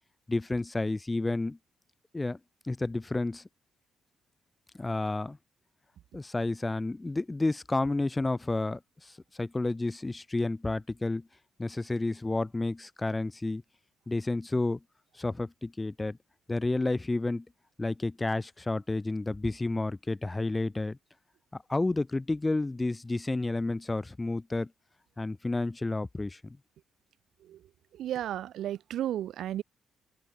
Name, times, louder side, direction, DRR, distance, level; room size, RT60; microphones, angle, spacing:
voice 1, 0.3-1.6 2.1-2.4 2.6-3.4 4.7-5.4 6.1-11.3 11.6-13.6 14.1-14.8 15.1-16.2 16.5-17.4 17.8-21.0 21.5-24.7 25.2-26.6, left 2 dB, 15° left, 2.8 m, -31 dB
voice 2, 27.9-29.6, right 12 dB, 75° right, 1.1 m, -33 dB
open air
cardioid pair, 90°, 0 cm